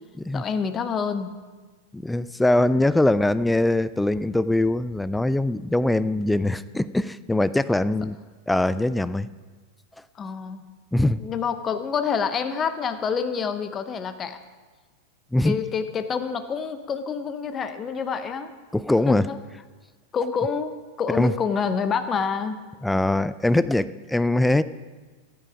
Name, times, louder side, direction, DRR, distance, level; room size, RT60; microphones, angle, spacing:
voice 1, 0.3-1.3 10.2-10.7 11.2-14.4 15.4-18.5 19.1-19.4 20.1-22.6, left 6 dB, 25° left, 10 dB, 0.8 m, -27 dB
voice 2, 1.9-8.2 8.5-9.3 10.9-11.2 15.3-15.6 18.7-19.3 21.1-21.3 22.8-24.6, left 1 dB, 5° left, 15 dB, 0.3 m, -22 dB
12.5 x 10.0 x 5.0 m, 1.3 s
figure-of-eight pair, 90°, 0 cm